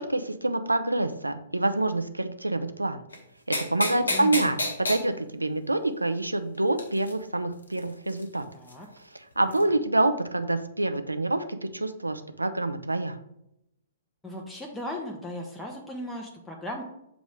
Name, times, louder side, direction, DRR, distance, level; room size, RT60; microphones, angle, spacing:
voice 1, 0.0-3.0 3.5-8.4 9.4-13.2, right 2 dB, 80° right, 9 dB, 0.5 m, -27 dB
sound 1, 3.1-3.2 3.5-5.0 6.8-7.1 7.8-7.9 8.1-8.2 8.7-8.8 9.5-9.6, left 1 dB, 70° left, 1.0 m, -28 dB
voice 2, 4.1-4.6 8.5-8.9 9.5-9.8 14.2-16.8, left 1 dB, 5° left, -1 dB, 0.7 m, -37 dB
7.1 x 3.0 x 4.8 m, 0.81 s
figure-of-eight pair, 115°, 0 cm